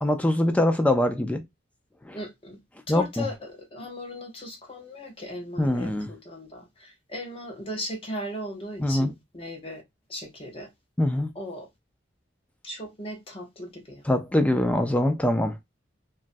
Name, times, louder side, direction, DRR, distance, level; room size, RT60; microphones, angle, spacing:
voice 1, 0.0-1.4 2.0-2.2 2.9-3.3 5.6-6.1 8.8-9.1 11.0-11.3 14.0-15.6, left 1 dB, 5° left, 0.3 m, -23 dB
voice 2, 2.1-2.6 2.9-9.8 10.1-10.7 11.4-11.7 12.6-14.0, equal, 30° left, 0.7 m, -37 dB
2.9 x 2.3 x 2.5 m
head